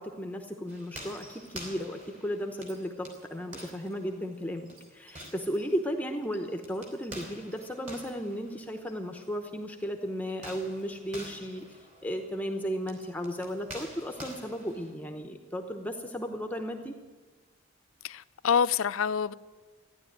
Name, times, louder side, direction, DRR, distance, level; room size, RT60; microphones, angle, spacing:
voice 1, 0.0-17.0, equal, 10° left, 0.9 m, -35 dB
sound 1, 0.7-9.3 10.3-14.9, equal, 40° right, 3.5 m, -48 dB
voice 2, 18.0-19.3, left 7 dB, 85° left, 0.5 m, -26 dB
14.5 x 10.5 x 9.2 m
head